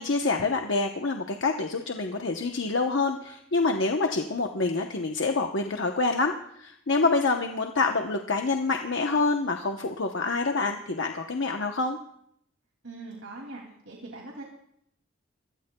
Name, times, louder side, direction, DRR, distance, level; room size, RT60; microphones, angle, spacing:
voice 1, 0.0-6.3 6.6-12.0, left 3 dB, 65° left, 4 dB, 0.9 m, -26 dB
voice 2, 12.8-14.4, right 2 dB, 90° right, -1 dB, 2.6 m, -41 dB
23.0 x 18.5 x 2.3 m, 0.73 s
head